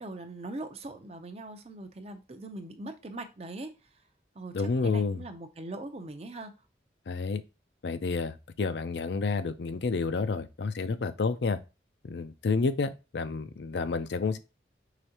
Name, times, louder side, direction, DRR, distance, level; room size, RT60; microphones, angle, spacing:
voice 1, 0.0-4.0 4.3-6.5, right 2 dB, 35° right, 0.5 m, -41 dB
voice 2, 4.5-5.2 7.1-7.4 7.8-11.6 12.0-14.4, left 4 dB, 75° left, 0.5 m, -30 dB
5.0 x 3.5 x 2.8 m
head